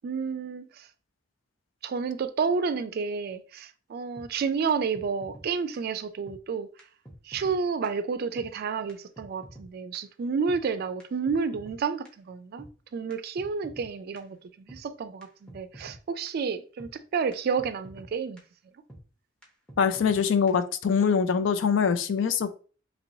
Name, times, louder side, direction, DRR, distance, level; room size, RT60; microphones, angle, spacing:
voice 1, 0.0-0.8 1.8-6.7 7.3-14.4 14.7-18.4, right 5 dB, 55° right, 0.3 m, -30 dB
sound 1, 4.2-4.3 4.7-4.8 4.9-5.5 5.7-5.8 6.3-6.4 6.8-6.9 7.0-7.6 7.8-7.9 8.4-8.5 8.9-9.0 9.2-9.7 9.9-10.0 10.5-10.6 11.0-11.8 12.0-12.1 12.6-12.7 13.1-13.2 13.4-13.9 14.2-14.3 14.7-14.8 15.2-15.3 15.5-16.0 16.3-16.4 16.8-16.9 17.3-17.4 17.6-18.1 18.4-18.5 18.9-19.0 19.4-19.5 19.7-20.2 20.5-20.6, right 1 dB, 5° left, 0.9 m, -47 dB
voice 2, 19.8-22.6, left 6 dB, 80° left, 0.4 m, -23 dB
2.9 x 2.9 x 2.6 m
head